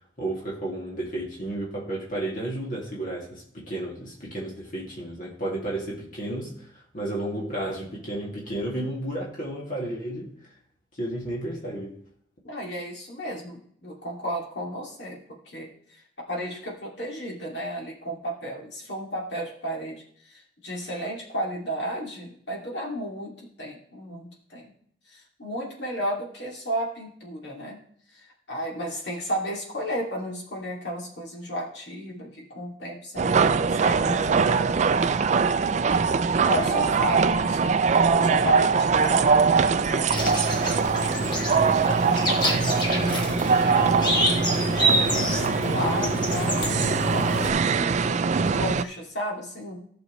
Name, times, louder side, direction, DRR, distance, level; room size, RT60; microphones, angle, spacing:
voice 1, 0.2-10.3 11.0-11.9 36.5-36.9, right 1 dB, 45° left, -4 dB, 2.4 m, -32 dB
voice 2, 12.4-15.2 15.5-24.7 25.1-27.8 28.1-35.2 36.0-40.4 41.3-44.1 44.6-48.2 48.5-49.8, equal, 65° left, -1 dB, 2.5 m, -33 dB
sound 1, 33.2-48.8, right 5 dB, 40° right, 0.3 m, -22 dB
sound 2, 40.1-47.5, equal, 25° left, 1.5 m, -27 dB
15.0 x 6.4 x 3.2 m, 0.64 s
head